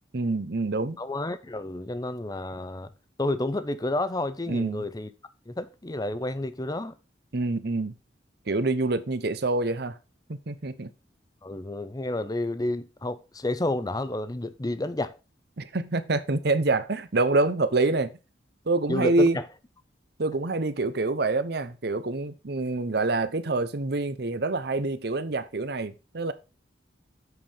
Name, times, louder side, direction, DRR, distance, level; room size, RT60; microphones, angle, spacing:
voice 1, 0.1-1.0 4.5-4.8 7.3-7.9 8.5-10.0 10.3-10.9 15.6-18.1 18.7-19.4 20.2-26.3, right 2 dB, 60° right, 0.8 m, -26 dB
voice 2, 1.0-2.9 3.2-5.1 5.5-7.0 11.4-15.2 18.9-19.5, left 1 dB, 20° left, 0.7 m, -30 dB
7.9 x 5.3 x 5.5 m
head